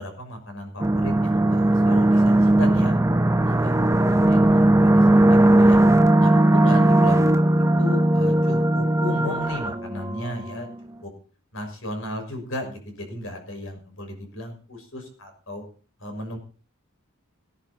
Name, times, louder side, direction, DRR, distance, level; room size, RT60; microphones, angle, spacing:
voice 1, 0.0-3.0 3.4-5.8 6.2-10.7 11.0-11.1 11.5-15.6 16.0-16.4, left 1 dB, 70° left, 4 dB, 6.1 m, -35 dB
sound 1, 0.8-10.6, right 1 dB, 15° right, 0.6 m, -18 dB
18.5 x 11.5 x 4.3 m, 0.39 s
head